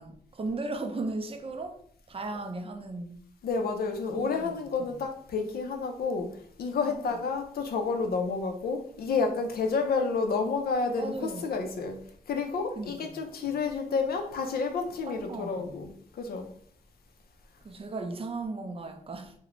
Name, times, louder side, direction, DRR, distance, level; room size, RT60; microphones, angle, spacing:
voice 1, 0.0-1.8 2.1-3.2 4.1-4.5 6.6-7.1 11.0-11.4 12.8-13.2 15.1-15.8 17.6-19.3, right 3 dB, 40° right, 0.4 m, -36 dB
voice 2, 3.4-6.3 6.6-16.5, left 4 dB, 90° left, 0.4 m, -30 dB
2.4 x 2.0 x 2.9 m
cardioid pair, 75°, 15 cm